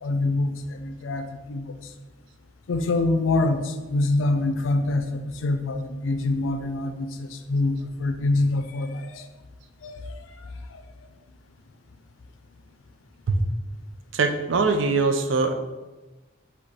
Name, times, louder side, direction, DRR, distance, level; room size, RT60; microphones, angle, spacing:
voice 1, 0.0-1.7 2.7-9.3 9.8-10.0 10.7-10.8, left 2 dB, 85° left, 8 dB, 0.4 m, -25 dB
voice 2, 14.1-15.5, right 4 dB, 75° right, 6 dB, 0.5 m, -22 dB
5.1 x 2.2 x 4.0 m, 1.2 s
head